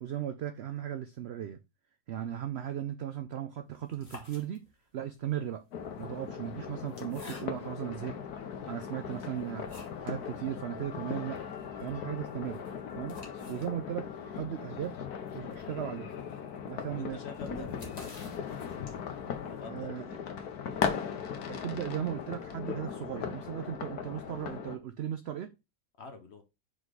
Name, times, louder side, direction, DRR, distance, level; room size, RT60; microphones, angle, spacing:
voice 1, 0.0-1.6 2.1-4.6 4.9-5.6 6.0-8.2 8.7-11.4 11.8-12.6 12.9-13.2 13.5-15.0 15.3-16.1 16.7-17.2 17.5-17.6 19.7-20.1 21.5-25.5, right 10 dB, 80° right, 0.5 m, -37 dB
sound 1, 3.8-5.0 5.8-7.9 8.5-8.6 9.1-10.2 10.5-10.6 10.9-11.0 11.4-19.2, left 2 dB, 25° left, 1.5 m, -52 dB
sound 2, 5.7-24.8, left 7 dB, 75° left, 1.4 m, -38 dB
voice 2, 16.9-18.2 19.5-20.2 26.0-26.4, left 4 dB, 50° left, 1.0 m, -46 dB
5.1 x 4.0 x 4.8 m
omnidirectional pair, 1.7 m